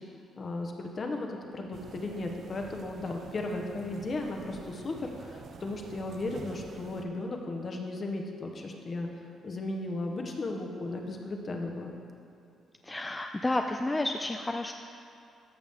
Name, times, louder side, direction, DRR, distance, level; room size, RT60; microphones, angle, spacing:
voice 1, 0.4-9.1 9.4-11.9, left 2 dB, 40° left, 2 dB, 1.1 m, -35 dB
sound 1, 1.7-7.1, right 5 dB, 55° right, 0.5 m, -48 dB
voice 2, 12.8-14.7, left 2 dB, 15° left, 4 dB, 0.4 m, -31 dB
14.0 x 6.1 x 3.6 m, 2.6 s
cardioid pair, 90°, 0 cm